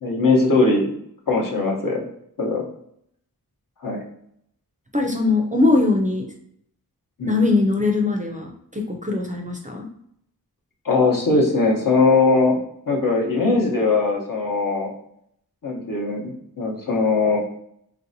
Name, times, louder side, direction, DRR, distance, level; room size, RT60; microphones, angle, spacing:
voice 1, 0.0-0.9 1.3-2.0 2.4-2.7 3.8-4.0 7.2-7.4 10.8-12.6 12.9-14.9 15.6-17.4, left 3 dB, 60° left, -1 dB, 0.9 m, -20 dB
voice 2, 4.9-6.3 7.3-9.9, left 3 dB, 20° right, 2 dB, 0.4 m, -21 dB
3.2 x 2.6 x 2.6 m, 0.71 s
wide cardioid pair, 60°, 37 cm